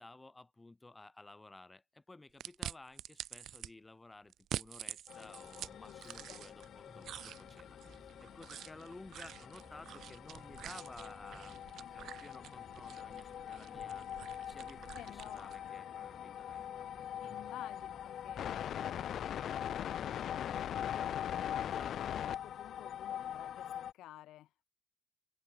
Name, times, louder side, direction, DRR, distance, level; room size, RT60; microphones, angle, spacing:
voice 1, 0.0-14.1 14.5-16.6 20.5-20.7 21.6-22.0, left 2 dB, 20° left, 5.2 m, -55 dB
sound 1, 2.4-3.7 4.3-6.7 7.0-15.6, right 11 dB, 75° right, 0.6 m, -47 dB
sound 2, 5.1-23.9, left 10 dB, 65° left, 1.0 m, -42 dB
sound 3, 5.3-22.5, right 1 dB, 10° right, 5.3 m, -63 dB
voice 2, 5.7-6.5 14.9-15.7 17.2-21.1 22.0-24.7, left 14 dB, 85° left, 2.7 m, -54 dB
open air
cardioid pair, 90°, 0 cm